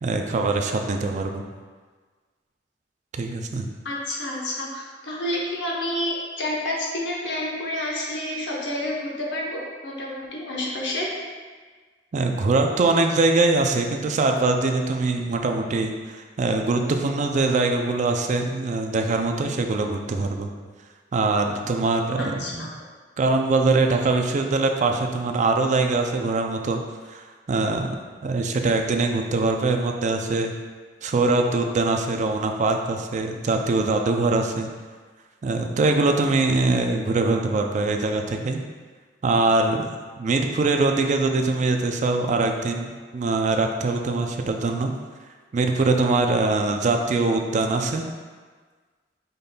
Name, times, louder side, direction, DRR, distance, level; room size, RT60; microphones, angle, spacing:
voice 1, 0.0-1.4 3.1-3.7 12.1-20.5 21.1-22.7 23.2-26.8 27.1-28.0 28.2-30.5 31.0-34.7 35.4-38.6 39.2-39.8 40.2-44.9 45.5-48.1, right 3 dB, 45° right, 4 dB, 0.4 m, -23 dB
voice 2, 3.8-11.1 22.2-22.7, left 1 dB, 75° left, -2 dB, 0.9 m, -29 dB
5.2 x 4.0 x 2.2 m, 1.5 s
head